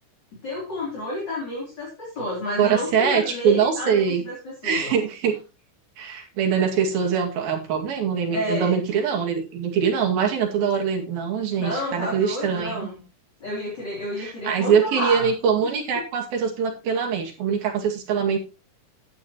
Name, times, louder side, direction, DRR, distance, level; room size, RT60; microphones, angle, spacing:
voice 1, 0.4-4.9 8.3-8.8 11.6-13.0 13.4-15.3, left 1 dB, 30° left, -4 dB, 4.0 m, -30 dB
voice 2, 2.6-4.2 4.6-5.3 6.0-12.9 14.2-18.4, right 7 dB, 85° right, 2 dB, 4.1 m, -23 dB
12.5 x 9.2 x 3.0 m, 0.30 s
omnidirectional pair, 4.1 m